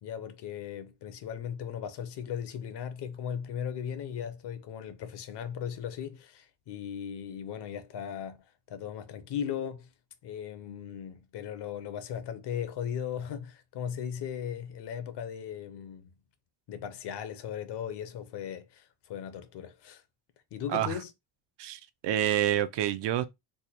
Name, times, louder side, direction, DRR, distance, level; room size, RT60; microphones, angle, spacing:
voice 1, 0.0-9.9 10.2-16.1 16.7-20.0 20.5-21.1, left 8 dB, 60° left, 0.7 m, -37 dB
voice 2, 21.6-23.2, right 11 dB, 65° right, 0.5 m, -28 dB
3.4 x 2.1 x 4.3 m
cardioid pair, 170°, 47 cm